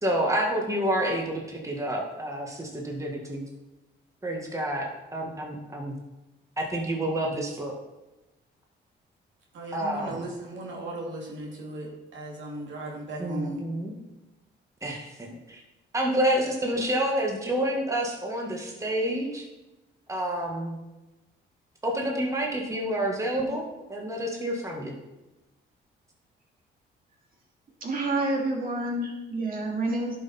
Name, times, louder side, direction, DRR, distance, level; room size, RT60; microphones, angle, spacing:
voice 1, 0.0-3.4 4.2-4.8 5.1-5.9 6.6-7.7 9.7-10.2 13.2-13.9 14.8-15.6 15.9-19.4 20.1-20.7 21.8-23.6 23.9-24.9, right 1 dB, 15° right, -1 dB, 1.7 m, -28 dB
voice 2, 9.5-13.6, right 1 dB, 75° right, -2 dB, 2.5 m, -37 dB
voice 3, 27.8-30.2, right 2 dB, 45° right, -1 dB, 2.5 m, -28 dB
11.0 x 5.7 x 4.3 m, 1.0 s
cardioid pair, 90°, 20 cm